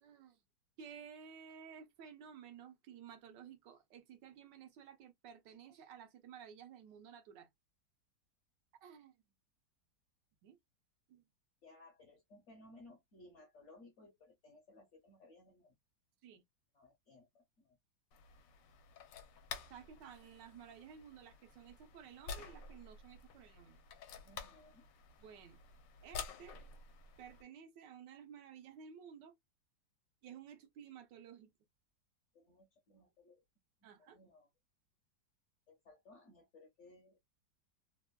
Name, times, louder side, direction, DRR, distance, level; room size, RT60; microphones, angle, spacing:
voice 1, 0.0-0.4 0.8-7.5 8.7-9.2 10.4-10.6 11.1-11.2 16.2-16.4 19.7-23.8 25.2-25.6 26.0-26.6 27.2-29.3 30.2-31.5 33.8-34.2, right 7 dB, 80° right, 1.4 m, -54 dB
voice 2, 11.6-15.7 16.7-17.8 24.2-24.8 32.3-33.4 34.0-34.5 35.7-37.2, left 2 dB, 55° left, 0.8 m, -61 dB
sound 1, 18.1-27.4, left 5 dB, 85° left, 1.3 m, -51 dB
3.4 x 2.2 x 2.2 m
omnidirectional pair, 1.9 m